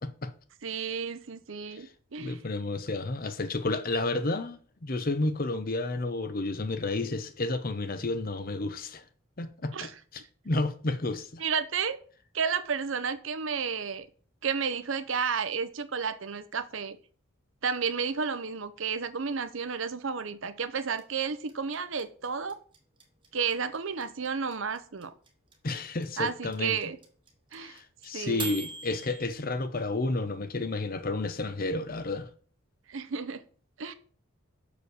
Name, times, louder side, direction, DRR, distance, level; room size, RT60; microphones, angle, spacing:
voice 1, 0.6-2.4 9.7-9.9 10.2-10.3 11.4-12.0 12.3-14.1 14.4-17.0 17.6-22.6 23.3-25.1 26.2-27.0 27.5-27.8 28.1-28.5 32.9-33.4 33.8-33.9, right 6 dB, 65° right, 0.7 m, -32 dB
voice 2, 2.2-9.0 9.4-11.4 25.6-26.8 27.6-32.3, left 2 dB, 40° left, 0.8 m, -31 dB
sound 1, 21.0-29.3, right 4 dB, 25° right, 1.2 m, -40 dB
6.4 x 5.0 x 6.7 m
head